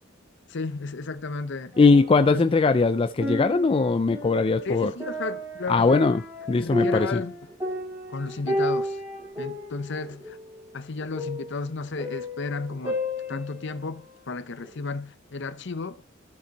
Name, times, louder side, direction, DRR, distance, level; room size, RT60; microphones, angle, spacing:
voice 1, 0.5-2.0 2.3-2.4 4.6-5.9 6.6-7.4 8.1-9.0 9.4-10.4 10.7-13.0 13.3-15.9, left 3 dB, 60° left, 0.8 m, -33 dB
sound 1, 1.7-2.6 3.0-14.1 14.6-14.7, left 1 dB, 15° right, 4.0 m, -33 dB
voice 2, 1.8-4.9 5.7-6.2 6.5-7.2, left 4 dB, 25° left, 0.3 m, -20 dB
12.0 x 7.2 x 4.1 m
head